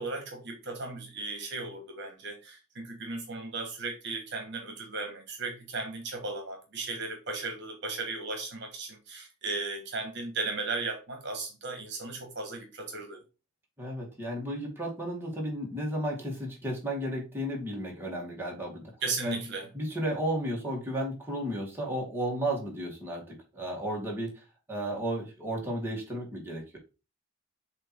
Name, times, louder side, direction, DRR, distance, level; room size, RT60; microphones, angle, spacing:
voice 1, 0.0-13.2 19.0-19.7, right 3 dB, 60° right, 1.4 m, -36 dB
voice 2, 13.8-18.9 19.2-19.4 19.7-26.8, right 1 dB, 10° right, 2.3 m, -33 dB
7.4 x 3.1 x 4.4 m
head